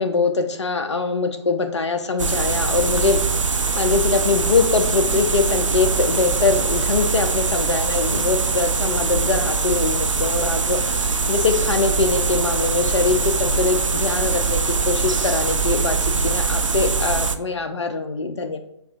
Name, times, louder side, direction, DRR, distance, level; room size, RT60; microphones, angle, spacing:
voice 1, 0.0-18.6, left 4 dB, 65° left, 7 dB, 0.6 m, -23 dB
sound 1, 2.2-17.4, right 4 dB, 85° right, 0.4 m, -22 dB
4.7 x 4.6 x 2.4 m, 0.79 s
figure-of-eight pair, 135°, 16 cm